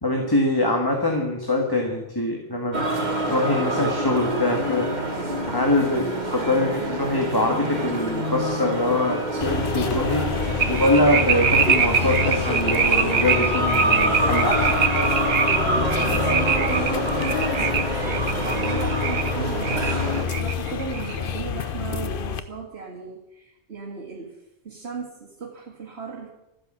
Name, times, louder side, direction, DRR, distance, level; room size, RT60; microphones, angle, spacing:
voice 1, 0.0-2.8 3.3-4.9 5.5-10.4 10.7-14.8, left 1 dB, 20° left, 0 dB, 1.9 m, -23 dB
sound 1, 2.7-20.2, right 1 dB, 40° right, 2.0 m, -27 dB
sound 2, 9.4-22.4, left 7 dB, 55° left, 0.9 m, -28 dB
sound 3, 10.6-19.3 19.6-21.2, right 7 dB, 90° right, 1.2 m, -24 dB
voice 2, 15.7-26.3, right 5 dB, 70° right, -2 dB, 2.1 m, -36 dB
14.0 x 9.8 x 7.6 m, 0.91 s
omnidirectional pair, 1.1 m